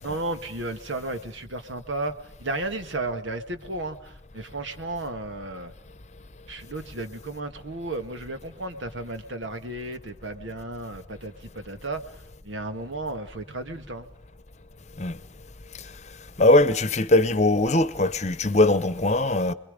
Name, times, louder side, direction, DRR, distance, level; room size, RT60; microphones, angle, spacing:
voice 1, 0.0-5.7 6.5-14.1, right 2 dB, 90° right, 1.8 m, -34 dB
voice 2, 16.4-19.5, left 2 dB, 35° left, 0.9 m, -20 dB
30.0 x 22.0 x 5.2 m
head